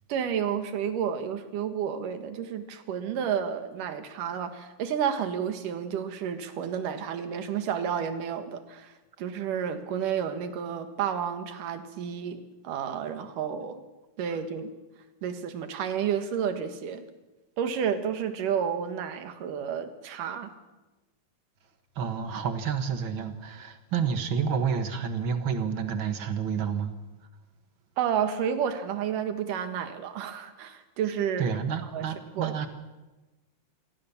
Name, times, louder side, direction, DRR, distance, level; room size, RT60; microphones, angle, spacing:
voice 1, 0.1-8.9 9.2-13.8 14.2-14.7 15.2-17.1 17.6-20.5 28.0-31.5 31.9-32.1 32.3-32.7, right 8 dB, 70° right, 9 dB, 3.0 m, -31 dB
voice 2, 22.0-26.9 31.4-32.7, right 6 dB, 50° right, 8 dB, 1.5 m, -29 dB
25.5 x 17.5 x 7.1 m, 1.1 s
omnidirectional pair, 4.1 m